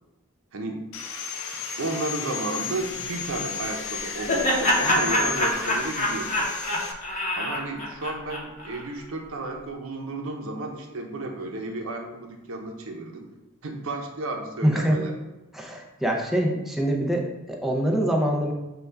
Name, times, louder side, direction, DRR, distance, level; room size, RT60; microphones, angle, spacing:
voice 1, 0.5-0.9 1.8-6.5 7.4-13.3 13.6-15.1, right 2 dB, 80° right, 3 dB, 0.7 m, -33 dB
Sawing, 0.9-6.9, left 6 dB, 80° left, 0.5 m, -34 dB
Laughter, 3.6-8.8, left 1 dB, 35° left, 0.8 m, -26 dB
voice 2, 14.6-15.0 15.5-18.5, right 1 dB, ahead, 0 dB, 0.5 m, -24 dB
6.5 x 2.3 x 3.3 m, 1.0 s
head